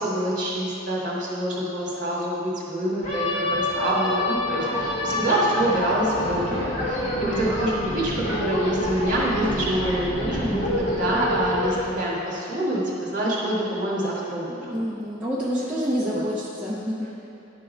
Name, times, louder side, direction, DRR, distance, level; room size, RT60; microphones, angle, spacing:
voice 1, 0.0-14.8 16.1-16.2, right 1 dB, 40° right, -6 dB, 1.8 m, -26 dB
sound 1, 3.0-11.8, left 1 dB, 30° left, 1.6 m, -27 dB
sound 2, 5.8-12.2, left 1 dB, 80° left, 0.6 m, -38 dB
voice 2, 14.5-17.1, equal, 5° right, -9 dB, 0.7 m, -28 dB
11.0 x 3.7 x 5.2 m, 2.7 s
head